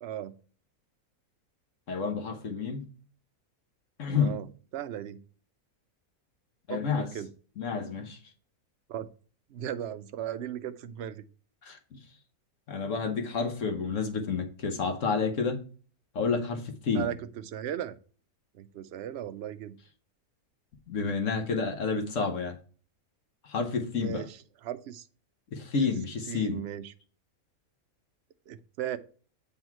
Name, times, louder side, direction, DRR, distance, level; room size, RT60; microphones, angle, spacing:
voice 1, 0.0-0.4 4.2-4.5 4.7-5.2 6.7-7.3 8.9-9.1 9.5-11.2 16.9-18.0 18.5-19.8 23.9-25.1 25.8-25.9 26.3-26.9 28.5-29.0, right 10 dB, 65° right, 0.6 m, -37 dB
voice 2, 1.9-2.8 4.0-4.4 6.7-7.1 7.6-8.2 11.6-12.0 12.7-15.6 16.1-17.1 20.9-22.6 23.4-24.3 25.5-26.6, left 5 dB, 60° left, 1.2 m, -30 dB
7.8 x 3.5 x 4.4 m
omnidirectional pair, 1.6 m